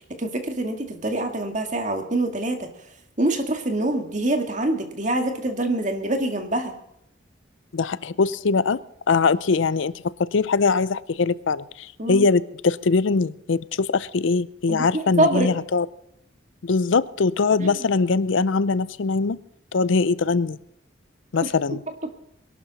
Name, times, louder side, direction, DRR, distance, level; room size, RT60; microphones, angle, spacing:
voice 1, 0.2-2.7 3.2-6.7 12.0-12.3 14.7-15.5 17.6-17.8 21.4-21.5, right 1 dB, 40° right, 5 dB, 2.0 m, -25 dB
voice 2, 7.7-8.8 9.1-15.9 16.6-19.4 19.7-20.6 21.3-21.8, left 4 dB, 75° left, 18 dB, 0.5 m, -22 dB
22.0 x 12.0 x 4.1 m, 0.76 s
head